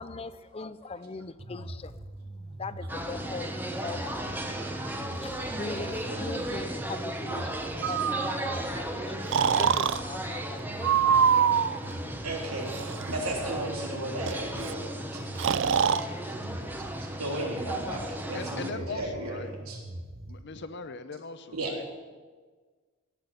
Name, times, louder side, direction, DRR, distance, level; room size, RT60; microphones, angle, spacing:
voice 1, 0.0-2.1 2.6-3.5 3.8-4.4 5.1-9.1 9.4-10.6, left 3 dB, 25° left, 14 dB, 0.5 m, -40 dB
sound 1, 1.4-20.4, right 1 dB, 30° right, 1.1 m, -42 dB
sound 2, 2.9-18.7, right 1 dB, 10° right, 1.0 m, -36 dB
Breathing, 7.8-8.6 9.3-10.0 10.8-11.8 12.7-13.1 14.3-14.4 14.6-14.7 15.4-16.0, right 7 dB, 60° right, 0.4 m, -24 dB
voice 2, 12.2-12.7 13.1-15.2 17.2-19.8 21.5-21.7, right 2 dB, 85° right, -1 dB, 3.5 m, -35 dB
voice 3, 18.3-19.5 20.3-21.9, left 4 dB, 55° left, 11 dB, 0.8 m, -40 dB
17.0 x 6.1 x 9.8 m, 1.4 s
head